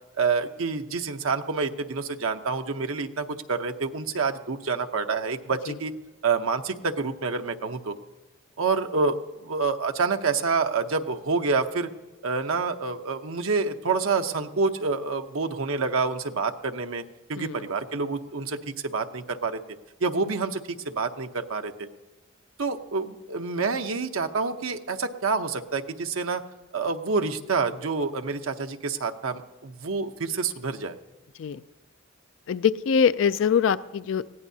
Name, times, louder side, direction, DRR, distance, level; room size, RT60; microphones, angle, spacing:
voice 1, 0.2-5.9 6.2-8.0 8.6-11.9 12.2-17.0 17.3-19.6 20.0-21.9 22.6-26.4 26.7-31.0, right 4 dB, 85° right, 6 dB, 0.8 m, -27 dB
voice 2, 32.5-34.2, left 7 dB, 70° left, 15 dB, 0.3 m, -23 dB
20.5 x 15.5 x 2.8 m, 1.2 s
head